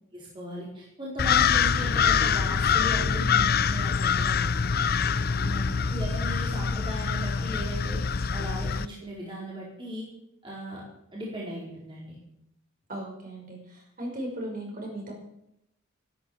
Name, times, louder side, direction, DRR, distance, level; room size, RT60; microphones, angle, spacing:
voice 1, 0.1-4.7 5.9-8.0 8.3-10.1 10.4-10.8 11.1-12.2, equal, 25° right, -5 dB, 4.5 m, -37 dB
sound 1, 1.2-8.9, left 6 dB, 45° left, 0.6 m, -25 dB
voice 2, 5.4-5.9 12.9-15.1, right 1 dB, 40° right, 0 dB, 5.7 m, -37 dB
14.5 x 13.0 x 7.4 m, 0.80 s
head